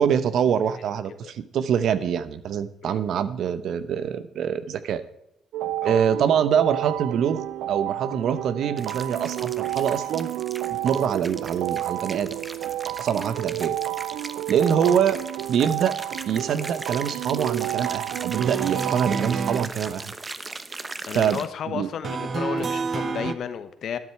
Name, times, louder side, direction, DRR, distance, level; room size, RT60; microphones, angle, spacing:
voice 1, 0.0-5.0 5.8-10.3 10.8-12.4 13.0-13.8 14.5-15.2 15.5-15.9 16.3-20.1 21.1-21.4 21.7-21.9, right 8 dB, 70° right, 13 dB, 0.9 m, -24 dB
sound 1, 5.5-19.7, right 14 dB, 90° right, 0.3 m, -31 dB
sound 2, 8.8-21.5, right 3 dB, 25° right, 0.9 m, -39 dB
sound 3, 18.3-19.6 22.0-23.3, right 4 dB, 50° right, 0.9 m, -28 dB
voice 2, 21.0-24.0, left 8 dB, 65° left, 11 dB, 1.1 m, -33 dB
12.0 x 9.7 x 4.7 m, 0.84 s
cardioid pair, 90°, 0 cm